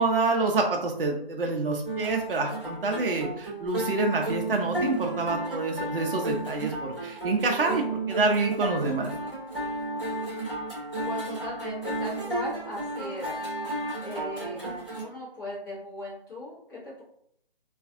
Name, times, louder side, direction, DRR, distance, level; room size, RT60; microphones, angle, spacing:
voice 1, 0.0-9.1, right 3 dB, 65° right, 2 dB, 0.5 m, -27 dB
sound 1, 1.8-15.0, right 1 dB, 5° right, 0.5 m, -33 dB
voice 2, 11.0-13.4 14.0-14.6 14.9-17.0, left 1 dB, 20° left, -7 dB, 0.8 m, -38 dB
2.4 x 2.3 x 2.4 m, 0.68 s
figure-of-eight pair, 150°, 30 cm